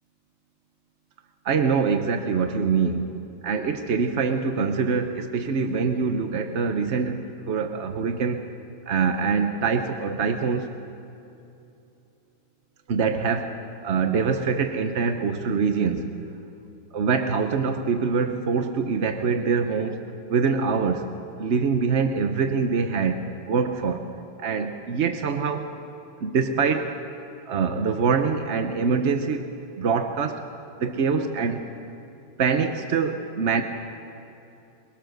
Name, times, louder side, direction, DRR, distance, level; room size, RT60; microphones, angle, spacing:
voice 1, 1.4-8.5 8.9-10.7 12.9-13.6 13.8-16.2 16.9-20.0 20.3-21.1 21.4-24.0 24.4-25.8 26.2-27.0 27.5-29.5 29.8-30.4 30.8-31.6 32.4-33.6, right 5 dB, 60° right, 6 dB, 0.7 m, -24 dB
22.5 x 21.5 x 6.5 m, 2.8 s
omnidirectional pair, 2.3 m